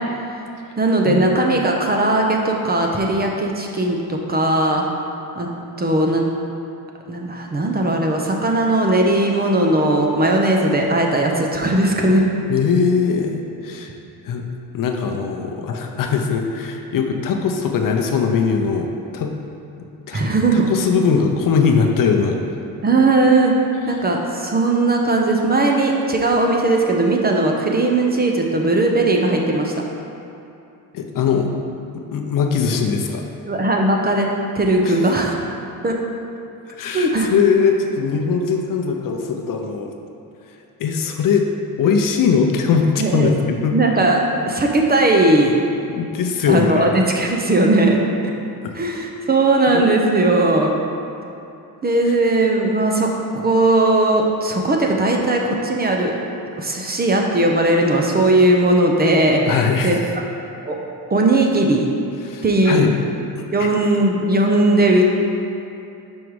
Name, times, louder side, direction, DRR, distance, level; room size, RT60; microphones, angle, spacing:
voice 1, 0.8-4.9 5.4-5.5 5.8-6.3 7.1-12.3 20.1-20.7 22.8-23.6 23.9-29.7 33.4-34.3 34.6-35.3 35.8-36.0 36.9-37.3 43.0-43.3 43.7-45.5 46.5-48.3 48.7-50.7 51.8-56.1 56.6-60.0 60.6-60.8 61.1-61.9 62.4-62.8 63.5-65.0, right 2 dB, 25° right, 1 dB, 0.7 m, -18 dB
voice 2, 12.5-13.9 14.2-14.4 14.7-19.3 20.1-20.2 20.5-22.4 30.9-31.5 31.9-33.2 34.8-35.0 36.7-39.9 40.8-41.5 41.8-43.8 45.9-46.9 48.6-48.7 49.7-50.0 59.5-60.0 62.2-62.9 63.6-63.7, left 6 dB, 55° left, 3 dB, 0.7 m, -20 dB
5.2 x 4.8 x 4.7 m, 2.7 s
cardioid pair, 95°, 39 cm